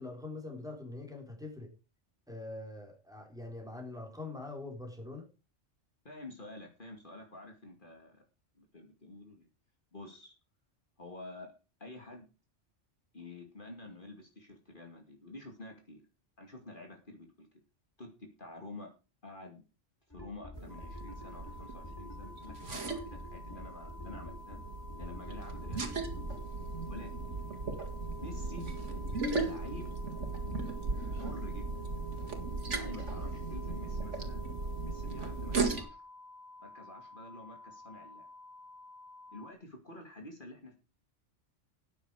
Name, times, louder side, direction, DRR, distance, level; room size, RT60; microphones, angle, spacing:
voice 1, 0.0-1.7 2.3-5.3, left 2 dB, 5° right, 2 dB, 3.7 m, -43 dB
voice 2, 6.0-8.2 8.6-9.5 9.9-10.3 11.0-11.5 11.8-12.3 13.1-16.0 16.4-17.5 18.0-18.9 19.2-19.6 20.1-24.6 24.9-26.3 26.9-27.1 28.2-28.7 29.4-30.0 31.1-31.7 32.7-34.4 34.8-36.0 36.6-38.3 39.3-40.7, left 2 dB, 45° left, 3 dB, 2.5 m, -49 dB
sound 1, 20.1-26.4, left 2 dB, 20° left, 2.9 m, -49 dB
sound 2, 20.5-35.8, right 3 dB, 80° right, 2.4 m, -37 dB
sound 3, 20.7-39.5, left 2 dB, 40° right, 1.6 m, -52 dB
13.0 x 9.3 x 4.9 m, 0.31 s
omnidirectional pair, 1.2 m